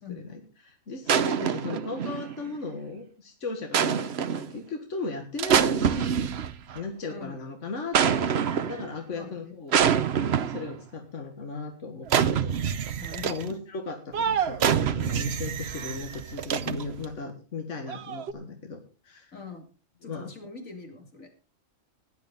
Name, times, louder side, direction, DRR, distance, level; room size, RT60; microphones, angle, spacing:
voice 1, 0.1-6.3 6.7-12.5 12.8-19.3 20.0-20.3, left 3 dB, 65° left, 4 dB, 2.1 m, -37 dB
sound 1, 1.1-2.5 3.7-4.6 5.4-6.8 7.9-8.9 9.7-10.8 12.1-13.5 14.1-17.1 17.9-18.3, right 8 dB, 55° right, 1.0 m, -26 dB
voice 2, 7.1-7.4 9.1-9.6 13.0-13.5 19.3-19.7 20.0-21.3, left 4 dB, 85° left, 4 dB, 3.3 m, -43 dB
16.5 x 10.5 x 4.0 m, 0.33 s
omnidirectional pair, 1.3 m